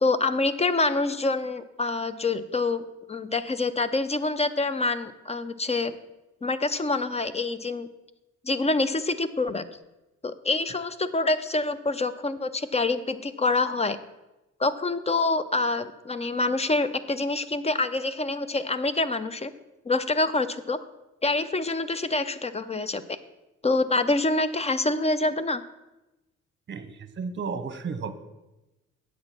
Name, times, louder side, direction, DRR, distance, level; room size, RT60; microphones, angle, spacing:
voice 1, 0.0-5.9 6.4-7.9 8.4-9.6 10.2-14.0 14.6-19.5 19.9-20.8 21.2-23.2 23.6-25.6, left 2 dB, 20° left, 13 dB, 0.5 m, -26 dB
voice 2, 26.7-28.1, right 5 dB, 40° right, 10 dB, 1.0 m, -33 dB
8.4 x 6.6 x 5.9 m, 0.99 s
cardioid pair, 90°, 30 cm